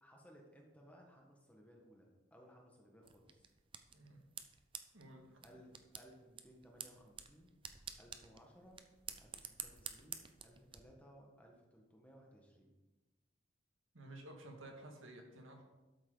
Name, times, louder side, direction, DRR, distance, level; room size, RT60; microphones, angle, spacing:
voice 1, 0.0-3.5 5.4-7.5 8.0-8.8 9.2-12.7, equal, 5° left, -1 dB, 1.6 m, -61 dB
sound 1, 3.0-10.8, right 7 dB, 25° right, 0.6 m, -51 dB
voice 2, 4.9-5.4 13.9-15.6, right 1 dB, 90° right, 2 dB, 2.0 m, -53 dB
12.5 x 7.9 x 4.0 m, 1.1 s
head